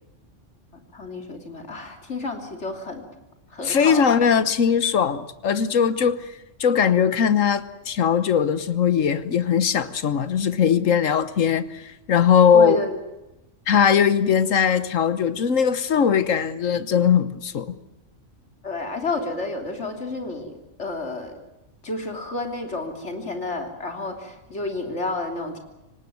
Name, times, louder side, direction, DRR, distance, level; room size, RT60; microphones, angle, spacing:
voice 1, 0.9-3.0 3.5-4.3 12.5-12.9 18.6-20.5 20.8-21.3 21.8-25.6, left 2 dB, 60° left, 4 dB, 3.5 m, -30 dB
voice 2, 3.6-6.2 6.6-12.8 13.7-17.7, left 7 dB, 80° left, 14 dB, 1.5 m, -20 dB
26.0 x 18.5 x 9.4 m, 0.97 s
omnidirectional pair, 1.3 m